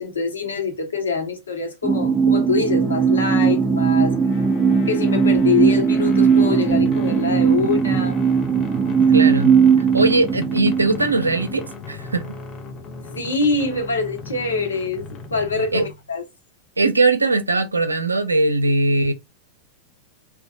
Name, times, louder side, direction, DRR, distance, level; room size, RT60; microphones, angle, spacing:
voice 1, 0.0-4.1 4.9-8.1 13.1-16.2, left 4 dB, 75° left, 0.9 m, -24 dB
sound 1, 1.8-11.6, right 6 dB, 15° right, 0.3 m, -18 dB
sound 2, 2.6-16.0, left 3 dB, 30° left, 0.6 m, -36 dB
voice 2, 9.1-12.2 15.7-15.9 16.8-19.1, right 2 dB, 80° right, 0.4 m, -20 dB
2.7 x 2.1 x 2.6 m
figure-of-eight pair, 90°, 0 cm